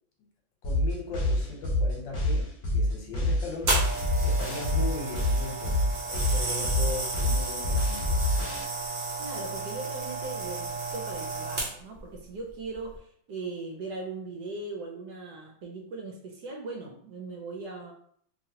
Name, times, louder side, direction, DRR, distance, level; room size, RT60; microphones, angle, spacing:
voice 1, 0.6-3.9 4.2-8.3, left 3 dB, 80° left, 0 dB, 1.5 m, -38 dB
sound 1, 0.6-8.6, left 1 dB, 40° left, 1.0 m, -26 dB
sound 2, 3.7-12.0 12.7-12.9, right 3 dB, 50° right, 0.7 m, -33 dB
voice 2, 9.2-17.9, right 3 dB, 70° right, 1 dB, 1.0 m, -39 dB
2.9 x 2.8 x 2.7 m, 0.63 s
omnidirectional pair, 2.1 m